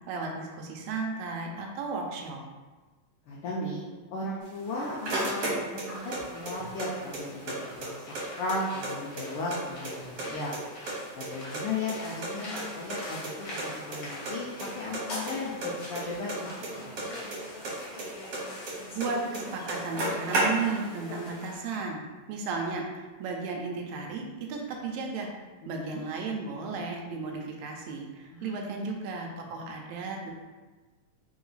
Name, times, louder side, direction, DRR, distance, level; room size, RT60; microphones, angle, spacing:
voice 1, 0.1-2.4 18.9-22.0 22.3-25.3 25.7-30.3, right 4 dB, 80° right, 1 dB, 1.9 m, -34 dB
voice 2, 3.3-3.8 4.1-10.5 11.1-14.5 14.7-16.5 16.8-17.0 25.6-26.0 28.3-28.8, left 2 dB, 85° left, -4 dB, 1.2 m, -36 dB
sound 1, 4.5-6.2 6.5-7.6 7.8-7.9 8.2-9.6 9.8-10.6 10.9-12.3 12.6-12.7 12.9-13.0 13.2-13.3 13.6-14.0 14.3-14.7 14.9-17.4 17.6-19.1 19.3-19.4 19.7-20.9, right 2 dB, 60° right, 2.0 m, -32 dB
sound 2, 6.0-21.6, left 1 dB, 50° left, 1.1 m, -43 dB
4.5 x 3.0 x 3.9 m, 1.3 s
omnidirectional pair, 3.3 m